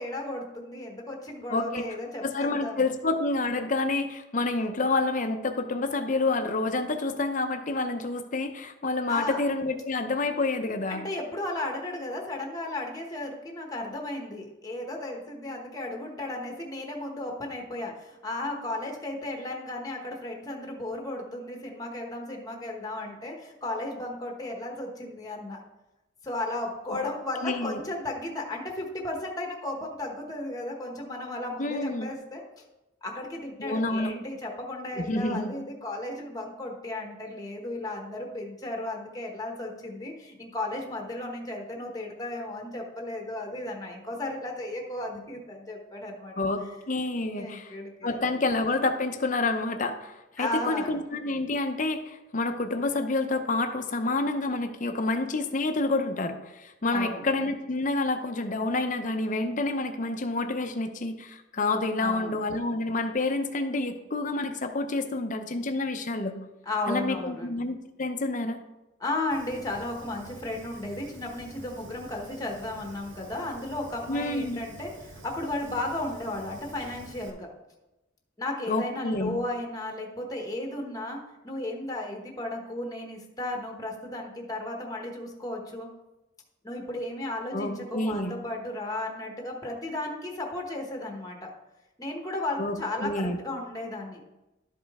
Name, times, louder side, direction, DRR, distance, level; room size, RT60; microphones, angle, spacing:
voice 1, 0.0-2.9 9.1-9.4 10.9-25.6 26.2-32.6 33.0-46.3 47.3-48.2 50.4-51.0 56.9-57.3 62.0-62.3 66.6-67.6 69.0-77.5 78.4-85.9 86.6-91.5 92.0-94.3, left 2 dB, 20° left, 1 dB, 1.1 m, -34 dB
voice 2, 1.5-1.8 2.2-11.0 26.9-27.0 27.4-27.8 31.6-32.1 33.6-34.1 34.9-35.5 46.4-47.7 48.0-66.4 66.9-68.6 74.1-74.6 78.7-79.4 87.5-88.3 92.6-93.4, left 2 dB, 40° left, 7 dB, 0.6 m, -28 dB
Fire, 69.3-77.3, right 2 dB, 65° right, 1.0 m, -48 dB
12.0 x 5.2 x 3.5 m, 1.0 s
head